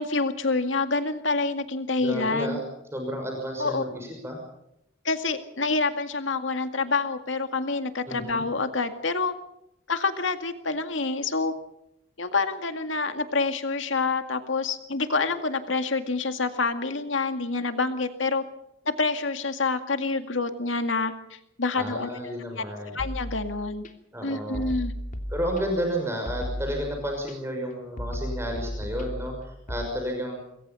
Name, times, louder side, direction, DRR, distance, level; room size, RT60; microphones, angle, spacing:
voice 1, 0.0-2.6 3.6-3.8 5.0-9.3 9.9-11.5 12.2-18.4 19.0-22.2 22.6-22.7 22.9-23.8 24.2-24.9, left 3 dB, 80° left, 8 dB, 2.1 m, -27 dB
voice 2, 2.0-2.6 2.9-4.4 8.1-8.4 21.7-23.0 24.1-24.7 25.3-30.4, equal, 15° right, 2 dB, 6.0 m, -31 dB
sound 1, 23.0-23.9 24.5-25.9 26.3-27.3 28.0-29.9, equal, 45° left, 3.0 m, -34 dB
27.0 x 22.0 x 5.6 m, 0.79 s
head